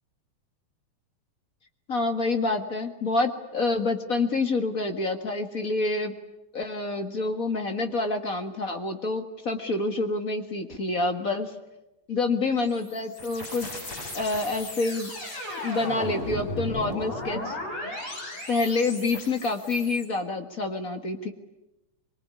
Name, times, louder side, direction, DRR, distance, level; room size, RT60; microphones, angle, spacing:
voice 1, 1.9-6.1 6.5-11.5 12.1-13.7 14.1-15.1 15.6-17.6 18.5-21.3, left 3 dB, 35° left, 6 dB, 1.7 m, -27 dB
sound 1, 12.4-20.0, left 1 dB, 60° left, 8.4 m, -36 dB
24.5 x 23.0 x 9.7 m, 0.96 s
omnidirectional pair, 3.4 m